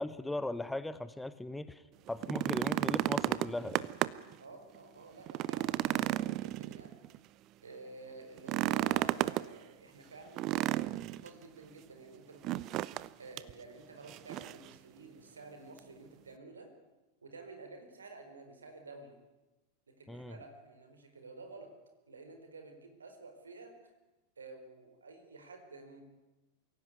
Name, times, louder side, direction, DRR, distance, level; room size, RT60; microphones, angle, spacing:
voice 1, 0.0-1.8 2.1-3.8 20.1-20.4, left 2 dB, 5° left, 14 dB, 0.9 m, -38 dB
sound 1, 2.1-4.3 4.7-4.8 5.3-7.2 8.4-9.5 10.4-11.3 12.4-13.1 13.4-13.5 14.1-14.7 15.8-15.9, right 15 dB, 40° right, 0.7 m, -32 dB
voice 2, 4.4-7.0 7.6-12.6 13.2-16.7 17.2-19.2 20.0-21.7 22.1-23.7 24.4-26.0, right 3 dB, 75° right, 5 dB, 4.5 m, -51 dB
23.5 x 16.5 x 9.7 m, 1.1 s
figure-of-eight pair, 90°, 0 cm